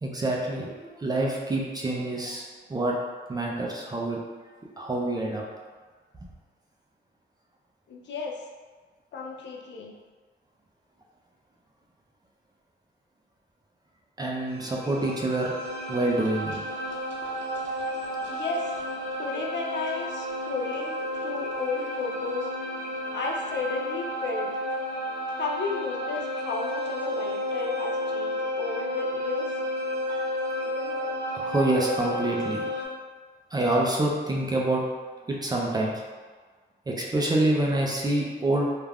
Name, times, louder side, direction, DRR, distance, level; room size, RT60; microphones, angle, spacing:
voice 1, 0.0-2.4 2.7-2.9 3.3-4.3 4.8-5.4 14.2-15.5 15.9-16.6 30.1-32.7 33.5-34.8 35.3-35.9 36.9-38.7, right 2 dB, 20° right, -3 dB, 0.3 m, -27 dB
voice 2, 7.9-8.5 9.1-9.9 18.3-18.7 19.2-22.5 23.1-24.5 25.3-29.5, left 4 dB, 70° left, 1 dB, 0.4 m, -33 dB
sound 1, 14.5-32.9, equal, 80° right, 0.6 m, -32 dB
2.3 x 2.2 x 3.3 m, 1.4 s
wide cardioid pair, 160°, 19 cm